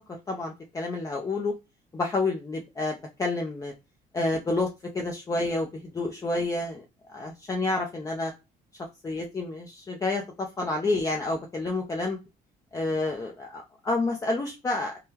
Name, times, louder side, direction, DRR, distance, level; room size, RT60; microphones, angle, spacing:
voice 1, 0.3-1.5 1.9-3.7 4.1-4.7 4.9-6.8 7.1-8.3 9.0-12.2 12.7-15.0, left 2 dB, 20° left, 1 dB, 0.5 m, -29 dB
3.7 x 2.1 x 2.8 m, 0.26 s
cardioid pair, 110°, 17 cm